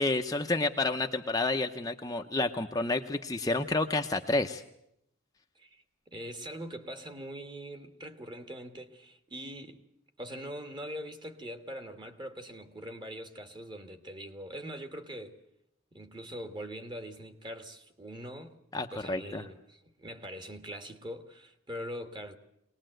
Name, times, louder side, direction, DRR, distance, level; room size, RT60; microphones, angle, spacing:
voice 1, 0.0-4.6 18.7-19.4, left 2 dB, 15° left, 0.8 m, -30 dB
voice 2, 5.5-9.8 10.2-15.4 15.9-18.6 18.9-22.4, equal, 20° right, 1.5 m, -42 dB
22.5 x 19.5 x 7.7 m
head